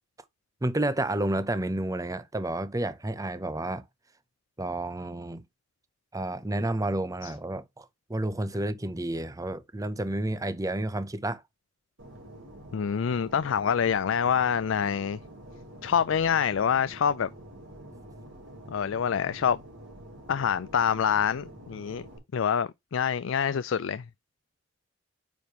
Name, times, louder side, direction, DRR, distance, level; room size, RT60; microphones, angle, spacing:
voice 1, 0.6-3.8 4.6-5.4 6.1-11.4, right 1 dB, 20° right, 0.7 m, -30 dB
Fixed-wing aircraft airplane, 12.0-22.2, right 1 dB, 85° right, 3.8 m, -47 dB
voice 2, 12.7-15.2 15.8-17.3 18.7-19.6 20.3-22.0 22.3-24.1, left 7 dB, 90° left, 0.4 m, -26 dB
9.2 x 5.2 x 2.9 m
head